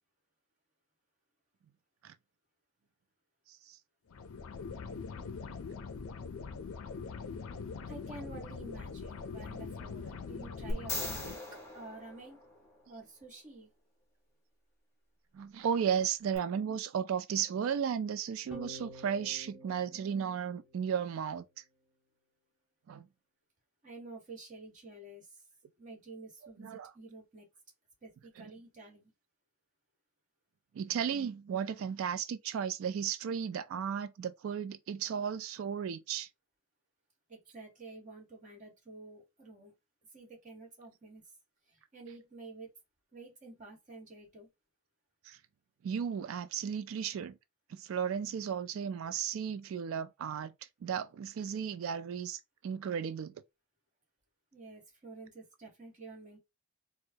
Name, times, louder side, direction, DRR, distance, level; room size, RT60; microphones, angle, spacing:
sound 1, 4.1-11.3, left 5 dB, 80° left, 0.4 m, -42 dB
voice 1, 7.9-11.4 11.7-12.4 12.9-13.7 23.8-25.4 25.8-27.5 28.0-29.1 37.3-39.7 40.1-41.2 41.7-42.7 43.1-44.5 54.5-56.4, right 3 dB, 35° right, 1.3 m, -50 dB
sound 2, 10.7-12.9 16.3-16.4, left 2 dB, 15° left, 1.2 m, -39 dB
voice 2, 15.3-21.4 22.9-23.1 26.6-26.9 30.7-36.3 45.3-45.4 45.8-47.3 47.7-50.5 50.8-53.3, right 7 dB, 70° right, 0.3 m, -34 dB
sound 3, 18.5-21.1, equal, 5° right, 0.8 m, -50 dB
4.4 x 2.1 x 2.7 m
head